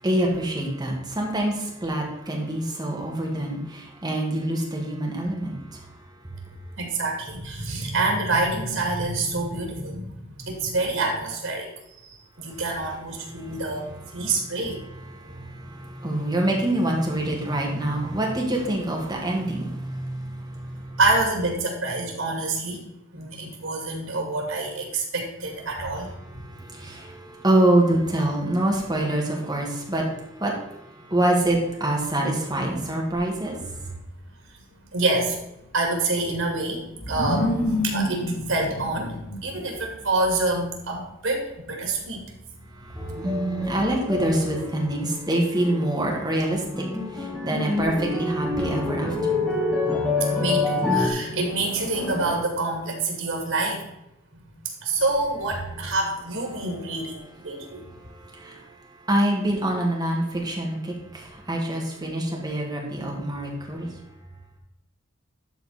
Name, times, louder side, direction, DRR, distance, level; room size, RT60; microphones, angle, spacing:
voice 1, 0.0-6.0 12.5-12.6 13.3-13.6 14.1-14.5 15.1-21.0 26.2-33.9 42.8-49.4 57.4-58.8 59.0-63.9, right 1 dB, 20° right, -1 dB, 1.9 m, -26 dB
voice 2, 6.8-11.7 12.0-13.9 14.1-14.8 21.0-22.8 23.1-26.1 34.9-35.4 35.7-39.2 39.4-42.2 50.3-53.9 54.3-57.8, right 2 dB, 85° right, 1 dB, 2.5 m, -27 dB
sound 1, 33.5-45.1 46.3-47.1 51.0-52.4, left 1 dB, 80° left, 2.4 m, -33 dB
sound 2, 43.0-45.3 45.5-46.1 46.4-51.1, left 3 dB, 5° left, 2.0 m, -27 dB
12.0 x 4.3 x 4.3 m, 0.89 s
head